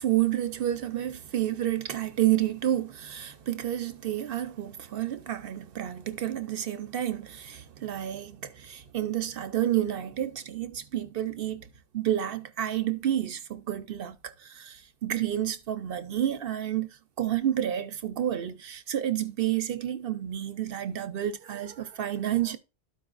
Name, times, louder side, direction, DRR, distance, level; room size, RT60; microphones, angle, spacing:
voice 1, 0.0-11.7 11.9-22.6, right 12 dB, 65° right, 0.8 m, -30 dB
13.0 x 4.9 x 2.4 m
omnidirectional pair, 1.1 m